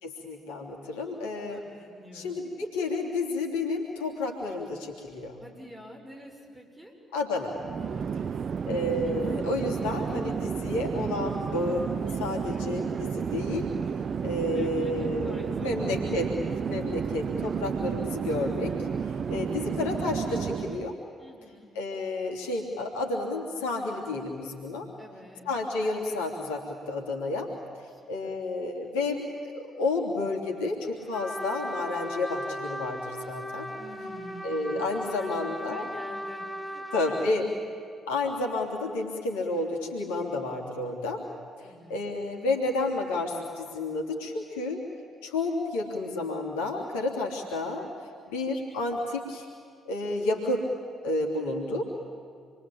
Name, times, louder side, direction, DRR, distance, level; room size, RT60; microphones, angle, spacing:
voice 1, 0.0-1.6 2.1-5.4 7.1-7.6 8.6-13.7 14.2-16.3 16.7-18.7 19.3-20.9 21.7-24.9 25.5-27.5 28.1-33.7 34.4-35.8 36.9-37.4 38.1-41.2 41.9-44.8 45.2-47.8 48.3-49.5 49.8-50.7 51.0-51.8, left 2 dB, 75° left, 0 dB, 3.2 m, -30 dB
voice 2, 1.5-2.4 5.4-6.9 7.8-8.4 12.5-13.0 14.5-16.2 19.3-20.1 21.2-21.7 25.0-25.5 27.9-28.5 33.8-37.5 41.6-42.1, equal, 10° right, 2 dB, 6.7 m, -49 dB
Chatter / Fixed-wing aircraft airplane, 7.5-20.9, right 6 dB, 45° right, 0.6 m, -31 dB
Trumpet, 31.1-37.3, equal, 15° left, 2.0 m, -37 dB
28.0 x 22.5 x 8.8 m, 2.2 s
figure-of-eight pair, 45°, 0 cm